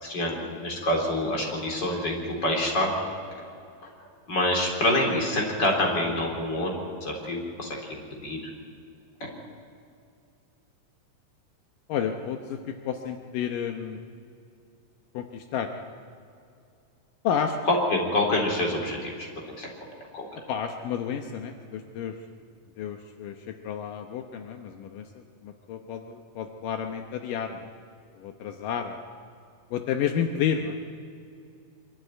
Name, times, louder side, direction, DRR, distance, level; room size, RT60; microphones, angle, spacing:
voice 1, 0.0-2.9 4.3-6.7 7.0-8.4 9.2-9.3 17.7-19.3 19.6-19.7 20.1-20.3, left 1 dB, 30° left, 0 dB, 4.1 m, -26 dB
voice 2, 11.9-14.0 15.1-15.7 17.2-17.6 20.5-22.2 22.8-27.7 28.1-29.0 29.7-30.8, left 8 dB, 80° left, 5 dB, 2.6 m, -31 dB
24.5 x 13.5 x 9.3 m, 2.4 s
omnidirectional pair, 3.8 m